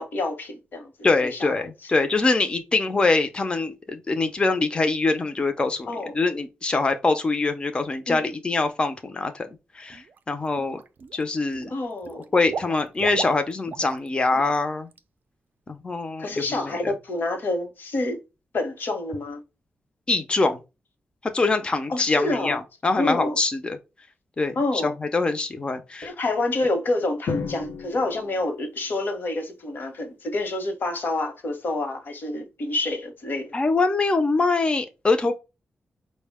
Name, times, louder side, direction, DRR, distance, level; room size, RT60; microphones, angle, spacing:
voice 1, 0.0-0.9 1.2-1.5 5.9-6.1 8.1-8.3 11.7-12.3 16.2-18.2 18.5-19.4 21.9-22.6 23.0-23.4 24.5-24.9 26.0-33.5, left 2 dB, 60° left, 1.0 m, -28 dB
voice 2, 1.0-5.9 6.1-9.5 9.7-10.8 11.1-11.7 12.3-14.9 15.7-16.9 20.1-20.6 21.2-23.8 24.4-26.1 33.5-35.3, left 3 dB, 25° left, 0.5 m, -24 dB
Water / Liquid, 9.9-10.2 10.6-11.2 11.5-14.1 14.3-14.6 14.9-15.0, right 6 dB, 55° right, 0.4 m, -36 dB
Drum, 27.3-29.4, left 5 dB, 90° left, 0.7 m, -34 dB
4.9 x 2.1 x 3.4 m
wide cardioid pair, 135°, 4 cm